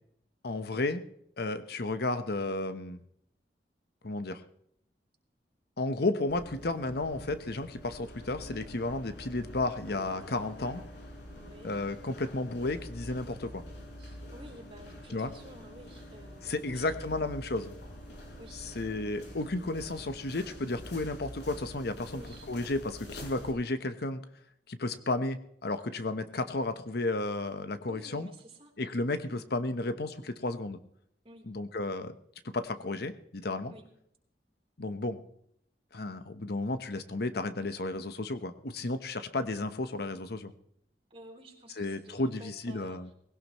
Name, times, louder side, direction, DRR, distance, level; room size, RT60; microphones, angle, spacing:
voice 1, 0.4-1.0 1.4-3.0 4.0-4.4 5.8-10.8 11.6-13.6 15.1-15.3 16.4-17.7 18.8-22.2 22.5-24.2 24.7-28.3 28.8-30.8 31.5-32.2 32.4-33.7 34.8-35.2 35.9-40.5 41.8-43.1, left 2 dB, 65° left, 10 dB, 1.0 m, -33 dB
sound 1, 6.3-23.5, equal, 80° left, 5.2 m, -46 dB
voice 2, 11.3-11.8 14.0-17.2 18.4-18.7 22.1-22.5 27.9-28.7 29.3-29.4 31.2-31.5 33.7-33.8 41.1-43.0, right 1 dB, 35° right, 1 dB, 3.7 m, -52 dB
20.0 x 17.0 x 3.1 m, 0.71 s
head